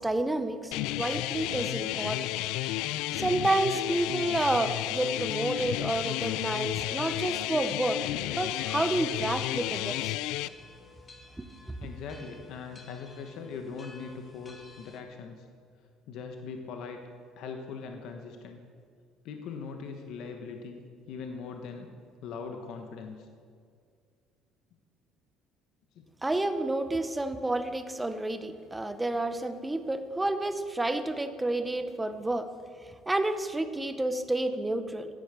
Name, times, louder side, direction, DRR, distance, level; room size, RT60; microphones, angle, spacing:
voice 1, 0.0-2.3 2.9-8.0 8.4-10.2 11.7-11.8 26.2-32.5 33.1-35.1, right 2 dB, 5° right, 9 dB, 0.7 m, -30 dB
sound 1, 0.7-10.5, left 16 dB, 80° left, 0.3 m, -32 dB
sound 2, 1.2-15.0, left 2 dB, 15° left, 1.4 m, -54 dB
voice 2, 11.8-15.4 16.1-17.0 17.4-18.6 19.2-20.8 21.1-21.9 22.2-23.3 26.0-26.1, left 5 dB, 55° left, 4 dB, 1.2 m, -40 dB
14.5 x 10.5 x 6.8 m, 2.1 s
cardioid pair, 170°, 0 cm